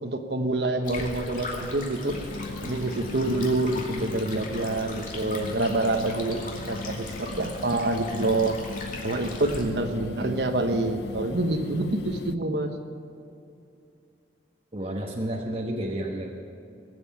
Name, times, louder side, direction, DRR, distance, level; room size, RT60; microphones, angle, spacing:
voice 1, 0.0-2.1 2.6-8.5 9.0-12.7, right 2 dB, 70° right, 5 dB, 1.1 m, -27 dB
Stream, 0.8-9.6, left 2 dB, 45° left, 2.5 m, -39 dB
sound 1, 2.1-12.4, left 3 dB, 70° left, 0.5 m, -38 dB
voice 2, 14.7-16.3, right 1 dB, 30° right, -1 dB, 1.1 m, -31 dB
20.0 x 8.0 x 8.8 m, 2.5 s
head